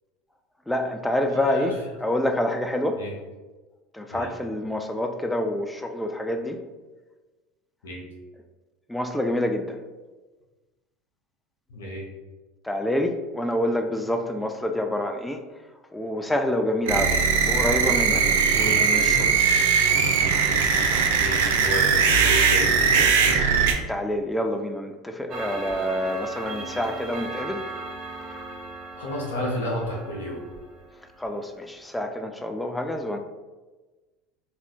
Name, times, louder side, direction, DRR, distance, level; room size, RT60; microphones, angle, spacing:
voice 1, 0.7-1.7 2.0-3.0 3.9-6.6 8.9-9.8 12.6-15.4 15.9-18.2 18.5-19.3 23.9-27.6 31.2-33.2, left 1 dB, 5° left, 5 dB, 0.3 m, -27 dB
voice 2, 1.3-1.7 2.9-3.1 4.1-4.3 7.8-8.0 11.7-12.1 21.2-23.4 29.0-30.4, left 1 dB, 85° left, -2 dB, 0.7 m, -32 dB
sound 1, 16.9-23.7, right 6 dB, 80° right, 0.4 m, -20 dB
Clock, 25.3-31.3, right 3 dB, 45° right, 0.7 m, -38 dB
2.4 x 2.2 x 3.5 m, 1.2 s
hypercardioid pair, 85°, 0 cm